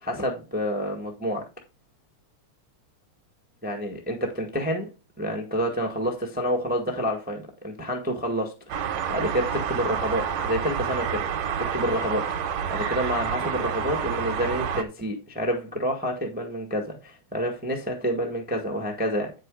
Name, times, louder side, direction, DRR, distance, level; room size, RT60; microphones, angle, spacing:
voice 1, 0.0-1.5 3.6-4.9 5.2-11.3 11.6-19.3, equal, 5° right, 0.9 m, -28 dB
sound 1, 8.7-14.8, right 7 dB, 75° right, 2.3 m, -29 dB
9.3 x 6.6 x 3.8 m
omnidirectional pair, 3.3 m